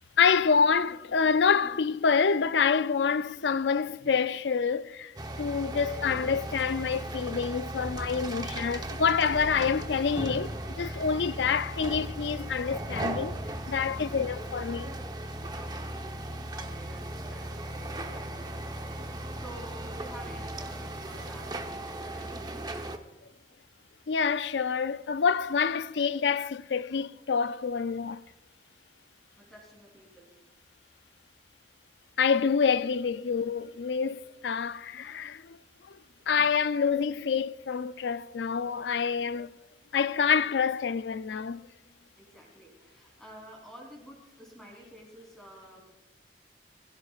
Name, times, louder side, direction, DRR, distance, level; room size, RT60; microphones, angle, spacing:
voice 1, 0.2-5.1 5.4-13.4 13.7-14.9 24.1-28.2 32.2-35.6 36.3-39.5 39.9-41.6, left 6 dB, 85° left, 0.5 m, -27 dB
sound 1, 5.2-23.0, right 1 dB, 25° right, 1.0 m, -37 dB
voice 2, 15.5-22.4 22.8-23.0 29.4-30.3 42.1-45.8, right 1 dB, 5° left, 3.4 m, -50 dB
21.0 x 16.0 x 2.4 m
head